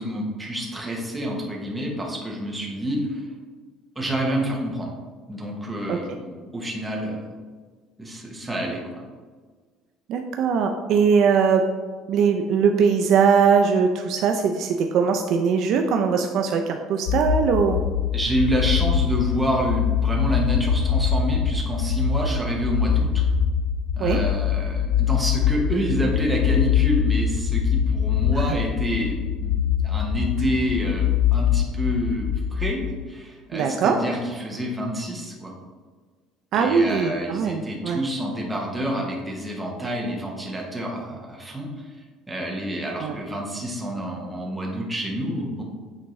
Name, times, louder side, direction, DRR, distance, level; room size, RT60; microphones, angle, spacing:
voice 1, 0.0-3.3 4.0-4.9 5.3-7.3 8.0-9.0 18.1-23.2 24.0-29.5 29.8-35.5 36.5-41.9 42.3-45.6, equal, 5° right, -2 dB, 0.9 m, -28 dB
voice 2, 10.1-11.6 12.1-17.8 24.0-24.2 33.5-34.0 36.5-38.0 43.0-43.2, right 6 dB, 45° right, 4 dB, 0.4 m, -21 dB
sound 1, 17.1-33.0, left 8 dB, 80° left, 0.5 m, -23 dB
8.6 x 3.6 x 3.1 m, 1.5 s
cardioid pair, 180°, 0 cm